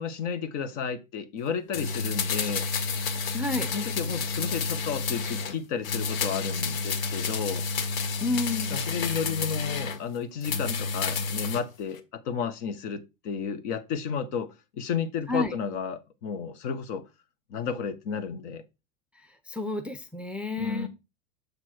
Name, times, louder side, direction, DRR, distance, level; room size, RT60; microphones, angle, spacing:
voice 1, 0.0-2.7 3.7-7.7 8.7-17.0 17.5-18.6 20.6-20.9, left 6 dB, 60° left, 1.3 m, -32 dB
sound 1, 1.7-5.6 5.8-10.0 10.4-11.6 11.9-12.0, left 4 dB, 80° left, 1.1 m, -30 dB
voice 2, 3.3-3.7 8.2-8.8 15.3-15.5 19.5-20.9, left 3 dB, 5° right, 0.5 m, -30 dB
6.7 x 4.5 x 4.4 m
hypercardioid pair, 105°, 40 cm